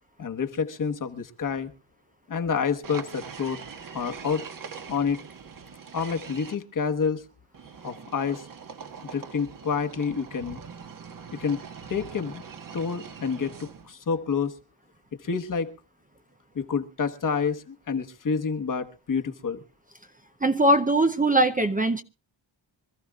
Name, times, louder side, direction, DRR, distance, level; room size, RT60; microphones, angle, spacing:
voice 1, 0.2-1.7 2.3-3.6 3.9-4.5 4.9-5.2 5.9-7.2 7.8-8.5 9.0-10.6 11.3-11.6 11.9-12.4 12.7-14.5 15.2-15.7 16.5-19.6, left 6 dB, 45° left, 1.3 m, -28 dB
sound 1, 2.8-6.5 7.5-13.9, right 6 dB, 45° right, 1.3 m, -42 dB
voice 2, 20.4-22.0, right 1 dB, 20° right, 0.6 m, -21 dB
25.5 x 14.0 x 2.4 m
wide cardioid pair, 135°, 45 cm